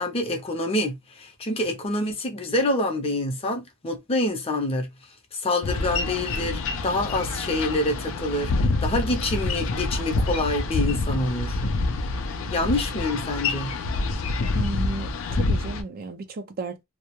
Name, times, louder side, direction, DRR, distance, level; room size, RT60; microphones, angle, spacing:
voice 1, 0.0-4.9 5.3-11.6 12.5-13.7, left 1 dB, 30° left, 0.6 m, -26 dB
Boat Water vehicle, 5.6-15.8, left 3 dB, 80° left, 0.4 m, -27 dB
voice 2, 14.5-16.8, right 3 dB, 45° right, 0.4 m, -34 dB
2.3 x 2.0 x 2.9 m
head